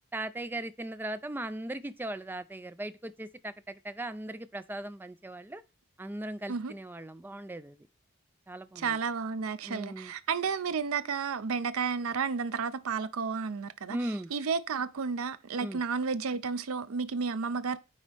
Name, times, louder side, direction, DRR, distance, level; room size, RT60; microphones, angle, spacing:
voice 1, 0.1-5.6 6.0-7.8 8.5-9.0 9.6-10.1 13.9-14.3 15.6-15.8, right 1 dB, 10° right, 0.3 m, -38 dB
voice 2, 8.8-17.8, right 5 dB, 80° right, 0.5 m, -32 dB
9.1 x 4.1 x 3.4 m
head